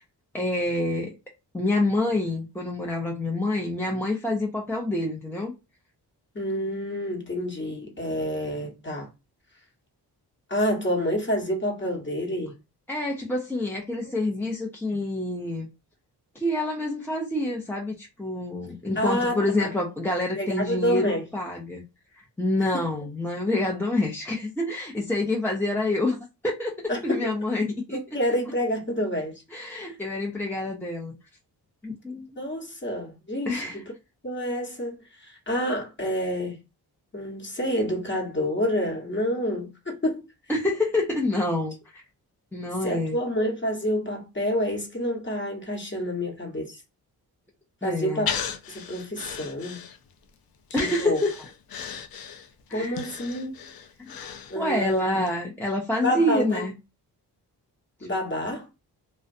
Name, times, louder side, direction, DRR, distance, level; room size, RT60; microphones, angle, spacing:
voice 1, 0.3-1.2 1.5-5.5 12.9-15.7 16.3-21.8 22.4-26.2 26.4-28.0 29.5-31.1 31.8-32.3 33.5-33.8 40.5-42.0 42.5-43.2 47.8-48.3 50.7-51.3 52.7-53.0 54.5-56.8, left 1 dB, 5° left, 0.7 m, -27 dB
voice 2, 6.3-9.1 10.5-12.5 18.9-19.7 20.3-21.2 22.7-22.9 26.9-27.3 27.9-30.0 32.4-33.9 34.2-36.6 37.1-40.2 42.8-46.8 47.8-48.3 48.7-49.8 50.7-51.2 52.7-53.7 54.5-55.2 56.0-56.6 58.0-58.7, equal, 30° left, 1.2 m, -28 dB
Breathing, 48.3-50.2 50.7-54.9 55.3-55.4, left 7 dB, 60° left, 0.6 m, -35 dB
2.4 x 2.2 x 2.5 m
cardioid pair, 60°, 40 cm